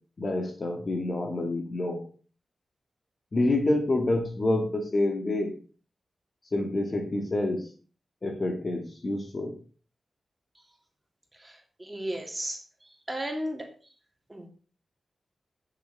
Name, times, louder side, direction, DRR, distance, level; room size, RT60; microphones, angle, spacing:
voice 1, 0.2-2.0 3.3-5.5 6.5-7.6 8.2-9.6, left 2 dB, 45° left, 4 dB, 2.2 m, -27 dB
voice 2, 11.4-12.6 13.1-13.7 14.3-14.5, right 1 dB, 15° right, 1 dB, 2.9 m, -34 dB
9.7 x 7.4 x 4.2 m, 0.38 s
cardioid pair, 70°, 0 cm